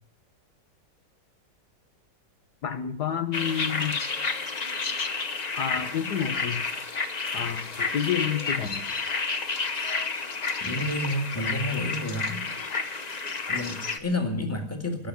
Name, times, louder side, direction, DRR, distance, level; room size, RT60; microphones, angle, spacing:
voice 1, 2.6-4.0 5.5-6.6 7.3-8.8, left 8 dB, 70° left, 8 dB, 1.5 m, -29 dB
sound 1, 3.3-14.0, left 4 dB, 35° left, 0.7 m, -30 dB
voice 2, 10.6-12.4 13.5-15.1, left 1 dB, 10° left, 3 dB, 1.9 m, -30 dB
17.5 x 6.6 x 9.6 m, 0.63 s
omnidirectional pair, 1.9 m